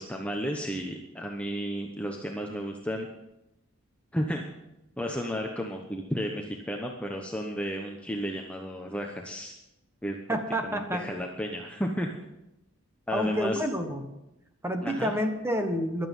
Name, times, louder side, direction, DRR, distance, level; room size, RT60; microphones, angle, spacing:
voice 1, 0.0-3.1 4.1-4.5 5.0-9.5 10.0-10.4 10.6-12.1 13.1-13.6 14.8-15.1, equal, 5° left, 1 dB, 0.9 m, -33 dB
voice 2, 10.3-11.1 13.1-14.1 14.6-16.1, equal, 10° right, 5 dB, 1.3 m, -29 dB
15.5 x 11.5 x 5.5 m, 0.91 s
head